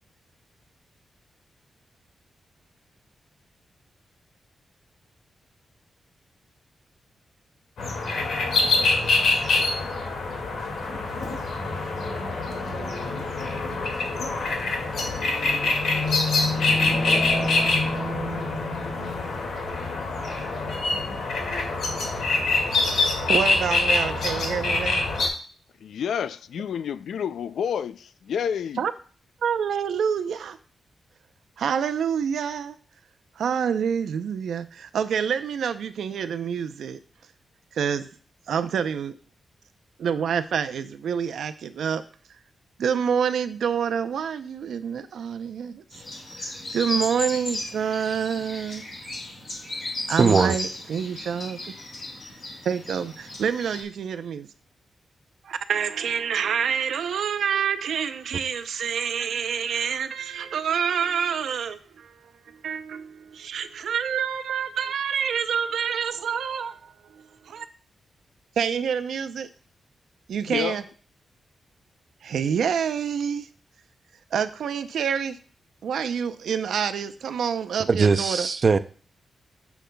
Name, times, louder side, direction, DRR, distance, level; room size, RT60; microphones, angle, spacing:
sound 1, 7.8-25.3, left 3 dB, 75° left, 2.1 m, -25 dB
voice 1, 23.3-25.0 28.8-28.9 29.4-30.6 31.6-32.8 33.4-37.0 37.7-38.1 38.5-39.1 40.0-42.0 42.8-45.8 46.4-48.8 50.1-51.6 52.6-54.5 55.4-67.7 68.6-69.5 70.3-70.8 72.2-73.5 74.3-75.4 75.8-78.5, right 7 dB, 85° right, 0.6 m, -27 dB
voice 2, 25.8-28.8 70.5-70.8, left 8 dB, 90° left, 0.3 m, -29 dB
sound 2, 45.9-53.8, left 2 dB, 40° left, 2.9 m, -35 dB
voice 3, 50.2-50.6 77.9-78.8, right 4 dB, 35° right, 0.4 m, -19 dB
10.0 x 7.1 x 2.3 m
wide cardioid pair, 175°, 0 cm